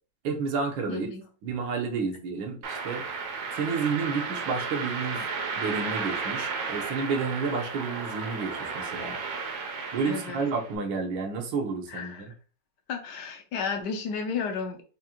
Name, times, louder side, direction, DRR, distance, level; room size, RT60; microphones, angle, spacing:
voice 1, 0.2-1.1 1.4-3.0 3.5-5.3 5.6-9.2 9.9-12.3, right 5 dB, 85° right, 3 dB, 1.6 m, -30 dB
voice 2, 0.9-1.2 10.1-10.4 11.9-12.2 12.9-14.8, left 5 dB, 70° left, 5 dB, 1.2 m, -33 dB
sound 1, 2.6-10.7, right 5 dB, 65° right, 1.1 m, -34 dB
5.1 x 2.5 x 2.8 m, 0.38 s
omnidirectional pair, 2.0 m